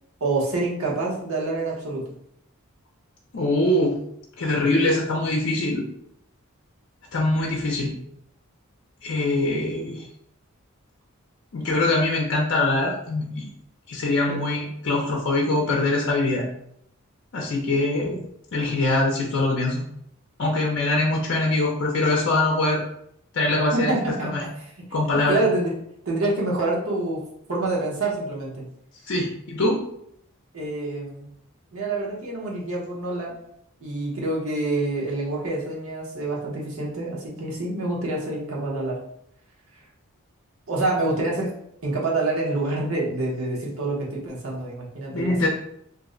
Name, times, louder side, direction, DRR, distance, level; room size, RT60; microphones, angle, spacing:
voice 1, 0.2-2.1 14.3-14.4 23.7-24.5 25.1-25.7 26.1-27.2 27.5-28.6 30.5-31.3 31.7-33.3 33.8-39.0 40.7-41.5 41.8-45.5, right 2 dB, 75° right, -3 dB, 0.9 m, -27 dB
voice 2, 3.3-4.0 4.4-5.9 7.1-7.9 9.0-10.1 11.5-13.5 13.9-16.4 17.3-18.2 18.5-19.8 20.4-22.8 23.3-23.9 24.2-24.4 24.9-25.4 29.1-29.8 45.1-45.5, left 2 dB, 55° left, -1 dB, 0.5 m, -23 dB
2.5 x 2.1 x 3.7 m, 0.73 s
head